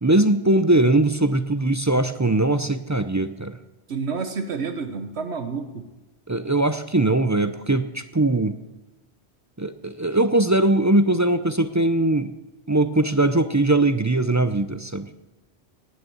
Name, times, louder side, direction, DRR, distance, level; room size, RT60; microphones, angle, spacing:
voice 1, 0.0-3.6 6.3-8.6 9.6-12.3 12.7-15.1, right 2 dB, 25° right, 10 dB, 0.4 m, -20 dB
voice 2, 3.9-5.8, right 5 dB, 75° right, 7 dB, 1.3 m, -29 dB
18.5 x 6.5 x 7.9 m, 1.0 s
omnidirectional pair, 1.1 m